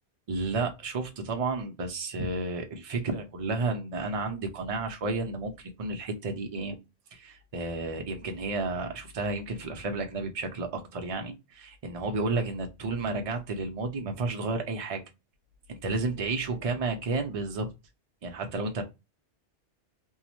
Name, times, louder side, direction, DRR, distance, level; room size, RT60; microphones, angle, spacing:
voice 1, 0.3-5.5 5.8-6.8 7.1-15.0 15.7-17.7 18.2-18.8, right 3 dB, 60° right, 4 dB, 0.3 m, -32 dB
2.6 x 2.0 x 2.8 m, 0.25 s
omnidirectional pair, 1.2 m